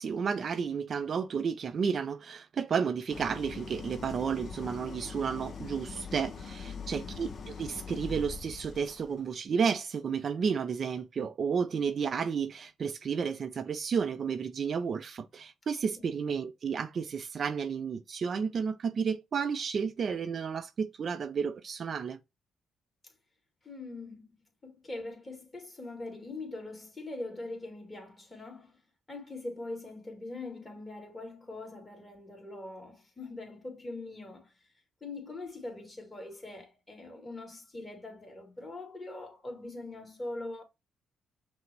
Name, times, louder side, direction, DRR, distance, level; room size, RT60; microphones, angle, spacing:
voice 1, 0.0-22.2, right 6 dB, 50° right, 0.4 m, -32 dB
Idling, 3.1-9.2, left 5 dB, 45° left, 0.6 m, -42 dB
voice 2, 6.6-7.2 16.0-16.1 23.6-24.3 24.6-28.8 29.1-34.7 35.0-40.6, left 2 dB, 20° left, 1.9 m, -42 dB
5.8 x 2.1 x 3.2 m
cardioid pair, 90°, 0 cm